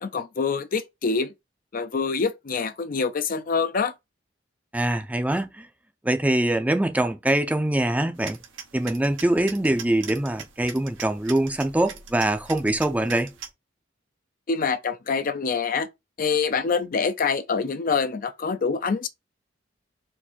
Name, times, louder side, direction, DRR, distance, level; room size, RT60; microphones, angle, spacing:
voice 1, 0.0-1.3 1.7-3.9 14.5-15.9 16.2-19.1, left 5 dB, 45° left, 0.5 m, -25 dB
voice 2, 4.7-5.7 6.0-8.4 8.7-13.3, right 1 dB, 10° right, 0.5 m, -23 dB
sound 1, 8.2-13.5, right 7 dB, 85° right, 1.1 m, -41 dB
4.5 x 2.7 x 4.3 m
head